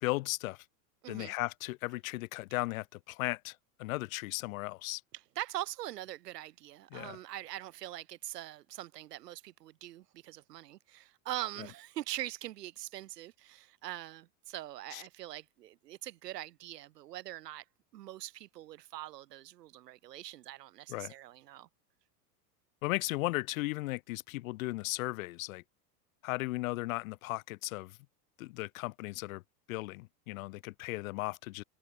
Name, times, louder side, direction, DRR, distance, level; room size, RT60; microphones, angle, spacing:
voice 1, 0.0-0.7 1.1-5.0 6.9-7.2 14.9-15.0 20.9-21.1 22.8-25.6 26.2-28.0 28.4-29.4 29.7-31.6, left 20 dB, 60° left, 1.6 m, -36 dB
voice 2, 1.0-1.4 5.1-17.7 17.9-21.7, right 14 dB, 85° right, 3.8 m, -43 dB
supercardioid pair, 165°, 47 cm